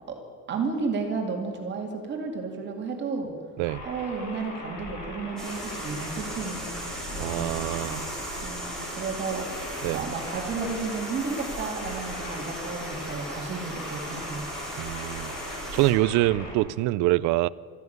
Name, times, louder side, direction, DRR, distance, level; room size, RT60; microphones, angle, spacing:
voice 1, 0.5-3.3 3.8-6.7 7.1-8.1 8.4-14.4, right 4 dB, 35° right, 2 dB, 2.3 m, -33 dB
sound 1, 3.6-16.5, left 2 dB, 80° left, 4.8 m, -39 dB
sound 2, 5.4-15.9, right 1 dB, ahead, 3.7 m, -38 dB
voice 2, 7.2-8.0 9.8-10.0 14.8-15.3 15.7-17.5, right 17 dB, 70° right, 21 dB, 0.5 m, -25 dB
13.5 x 11.0 x 9.3 m, 2.1 s
cardioid pair, 160°, 31 cm